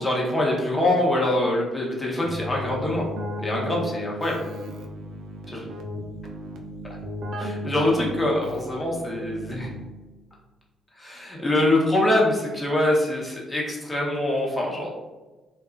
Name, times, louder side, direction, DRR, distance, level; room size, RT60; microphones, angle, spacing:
voice 1, 0.0-3.1 3.4-4.4 5.5-5.6 7.4-9.7 11.0-14.9, left 1 dB, 20° left, -2 dB, 0.8 m, -24 dB
Keyboard (musical), 2.2-10.1, equal, 75° right, 0.4 m, -35 dB
2.9 x 2.3 x 2.4 m, 1.2 s
cardioid pair, 90°, 0 cm